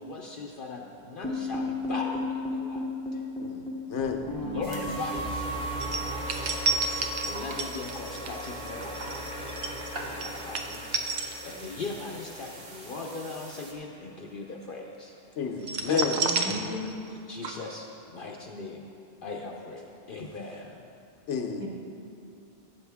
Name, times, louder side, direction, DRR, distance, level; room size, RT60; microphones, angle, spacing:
voice 1, 0.0-2.9 3.1-3.2 4.4-6.6 7.0-9.2 10.0-10.9 11.4-15.1 15.9-16.3 17.1-18.9 19.2-20.9, left 3 dB, 55° left, 0.8 m, -39 dB
sound 1, 1.2-13.4, left 1 dB, 5° left, 0.5 m, -36 dB
voice 2, 3.4-4.3 10.1-10.2 15.4-16.2 21.3-21.7, left 6 dB, 85° left, 1.1 m, -31 dB
voice 3, 4.2-5.0 16.1-17.0 21.6-21.7, left 1 dB, 25° right, 1.6 m, -37 dB
sound 2, 4.6-13.7, right 2 dB, 55° right, 1.3 m, -45 dB
sound 3, 5.8-11.9 12.2-12.5 15.6-17.2 17.4-17.5, right 4 dB, 75° right, 1.0 m, -31 dB
14.0 x 7.6 x 3.5 m
omnidirectional pair, 1.2 m